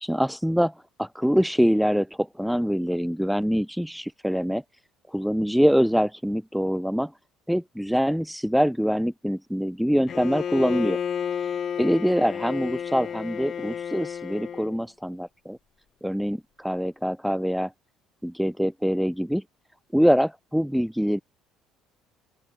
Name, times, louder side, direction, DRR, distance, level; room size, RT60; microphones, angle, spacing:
voice 1, 0.0-4.6 5.1-7.1 7.5-11.0 11.8-15.6 16.0-17.7 18.2-19.4 19.9-21.2, equal, ahead, 0.4 m, -24 dB
Bowed string instrument, 10.1-14.8, left 8 dB, 50° left, 1.0 m, -31 dB
open air
supercardioid pair, 80°, 0 cm